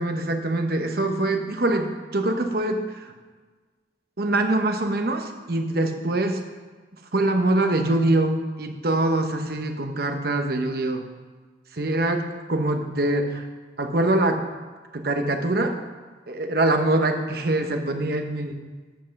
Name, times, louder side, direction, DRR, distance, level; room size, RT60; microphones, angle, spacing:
voice 1, 0.0-3.1 4.2-6.4 7.1-11.0 11.7-13.5 13.8-14.4 14.9-15.7 16.3-18.5, right 2 dB, 60° right, 5 dB, 1.1 m, -24 dB
13.0 x 5.5 x 5.9 m, 1.4 s
head